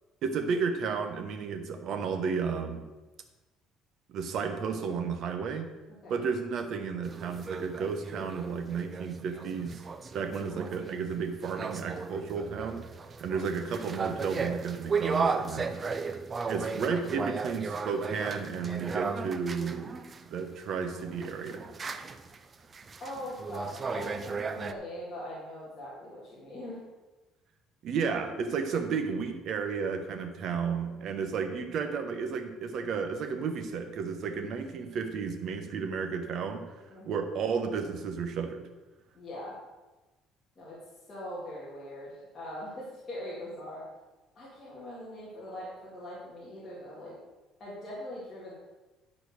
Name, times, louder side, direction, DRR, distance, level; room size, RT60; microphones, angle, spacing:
voice 1, 0.2-2.8 4.1-5.7 6.1-9.8 10.1-12.8 13.2-15.8 16.4-19.9 20.3-21.7 27.8-36.6 37.1-38.6, right 5 dB, 45° right, 6 dB, 1.1 m, -32 dB
sound 1, 7.0-20.2 21.0-24.7, right 5 dB, 20° right, 0.5 m, -35 dB
voice 2, 13.3-13.6 23.0-26.8 30.4-31.0 36.9-37.3 39.1-39.6 40.6-40.8 41.1-43.8 44.3-47.1 47.6-48.5, left 1 dB, 25° left, -8 dB, 2.5 m, -42 dB
11.0 x 4.4 x 6.4 m, 1.1 s
cardioid pair, 170°, 0 cm